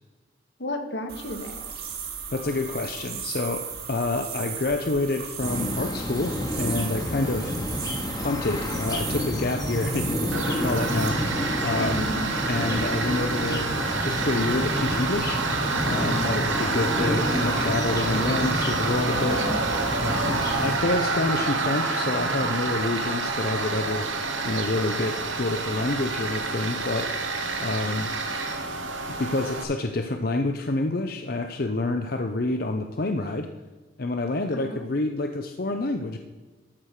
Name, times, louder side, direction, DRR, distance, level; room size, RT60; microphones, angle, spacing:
voice 1, 0.6-1.6 11.7-12.3 16.0-16.4 34.5-34.9, left 1 dB, 65° left, 5 dB, 1.5 m, -33 dB
sound 1, 1.1-11.1, right 7 dB, 55° right, 1.8 m, -36 dB
voice 2, 2.3-7.6 8.2-12.1 12.4-13.7 14.0-15.4 15.8-19.4 20.0-27.1 27.6-28.1 29.2-33.5 34.0-36.2, left 2 dB, 50° left, 5 dB, 0.6 m, -28 dB
sound 2, 5.4-20.8, left 1 dB, 20° left, 1.1 m, -30 dB
Tools, 10.3-29.6, right 3 dB, 85° right, 1.2 m, -28 dB
13.5 x 4.8 x 6.6 m, 1.2 s
head